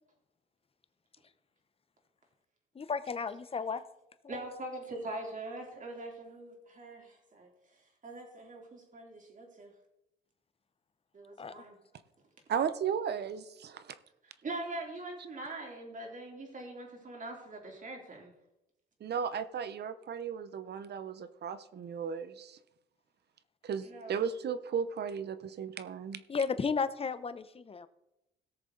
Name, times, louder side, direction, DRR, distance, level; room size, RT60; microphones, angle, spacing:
voice 1, 2.7-3.8 4.2-4.4 11.4-11.6 26.3-27.9, left 5 dB, 30° left, 0.8 m, -34 dB
voice 2, 4.3-9.7 11.1-11.8 14.2-18.3 23.8-24.2, right 2 dB, 40° right, 3.5 m, -43 dB
voice 3, 12.5-14.0 19.0-22.6 23.6-26.2, right 7 dB, 55° right, 0.8 m, -35 dB
17.5 x 6.8 x 3.9 m
cardioid pair, 90°, 20 cm